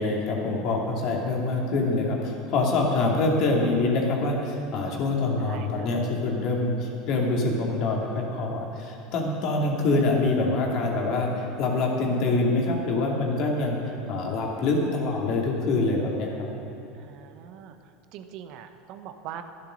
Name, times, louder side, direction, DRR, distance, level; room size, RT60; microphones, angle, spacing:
voice 1, 0.0-13.8 14.1-16.3, left 2 dB, 55° left, 0 dB, 2.6 m, -25 dB
voice 2, 5.4-5.9 17.0-17.7 18.1-19.4, right 10 dB, 60° right, 8 dB, 0.9 m, -42 dB
11.5 x 10.5 x 6.4 m, 2.9 s
hypercardioid pair, 90°, 0 cm